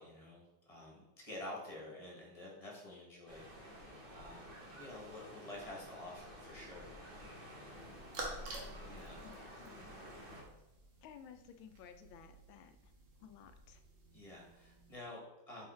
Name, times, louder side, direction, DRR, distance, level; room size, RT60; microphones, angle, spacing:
voice 1, 0.0-3.9 4.1-6.9 8.8-9.2 14.1-15.7, left 1 dB, 20° left, -3 dB, 1.3 m, -50 dB
sound 1, 3.3-10.4, equal, 30° right, 1.4 m, -52 dB
sound 2, 7.7-14.9, right 2 dB, 70° right, 1.9 m, -50 dB
voice 2, 9.2-10.4 11.0-12.9 13.2-13.8, left 8 dB, 80° left, 9 dB, 1.4 m, -56 dB
5.5 x 4.7 x 4.3 m, 0.95 s
omnidirectional pair, 2.2 m